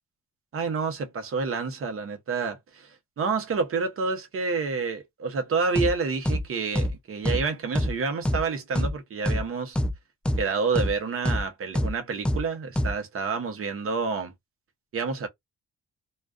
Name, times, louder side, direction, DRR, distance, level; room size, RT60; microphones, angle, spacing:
voice 1, 0.5-9.8 10.4-14.3 14.9-15.3, right 4 dB, 45° right, 0.8 m, -29 dB
sound 1, 5.8-5.9 6.3-6.4 6.8-6.9 7.3-7.4 7.8-7.9 8.3-8.4 8.8-8.9 9.3-9.4 9.8-9.9 10.3-10.4 10.8-10.9 11.3-11.4 11.8-11.9 12.3-12.4 12.8-12.9, equal, 5° left, 0.4 m, -24 dB
2.3 x 2.3 x 2.4 m
cardioid pair, 90°, 30 cm